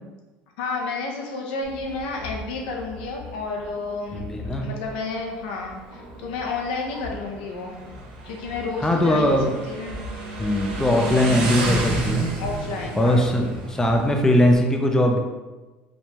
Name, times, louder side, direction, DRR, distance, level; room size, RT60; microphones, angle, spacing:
voice 1, 0.6-4.2 4.6-7.8 8.2-9.4 9.7-10.0 10.9-11.4 12.4-13.3, left 3 dB, 90° left, 0 dB, 0.7 m, -31 dB
Motorcycle, 1.6-14.6, right 2 dB, 90° right, 0.9 m, -32 dB
voice 2, 4.1-4.7 8.8-9.5 10.4-12.3 13.0-15.2, left 1 dB, 10° left, 2 dB, 0.4 m, -20 dB
4.3 x 2.2 x 2.9 m, 1.2 s
supercardioid pair, 115°, 5 cm